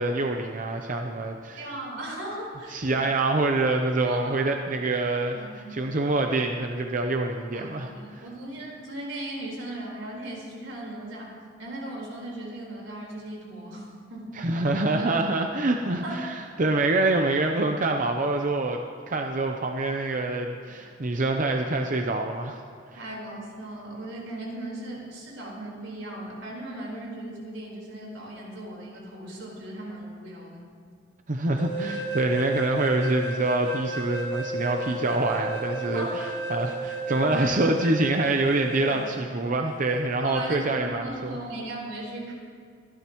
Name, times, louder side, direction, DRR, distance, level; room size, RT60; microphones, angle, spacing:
voice 1, 0.0-1.7 2.7-5.4 5.7-8.3 14.4-22.6 22.9-23.0 31.3-41.4, right 2 dB, 45° right, 3 dB, 0.7 m, -26 dB
voice 2, 1.6-3.0 4.0-4.5 5.3-5.8 7.5-11.3 11.6-14.3 16.0-16.2 22.9-30.6 35.9-36.1 37.2-37.3 38.9-39.0 40.2-42.3, right 1 dB, 85° right, -3 dB, 4.3 m, -37 dB
sound 1, 31.6-39.2, right 2 dB, 60° left, 1.7 m, -33 dB
25.0 x 11.5 x 3.1 m, 2.3 s
head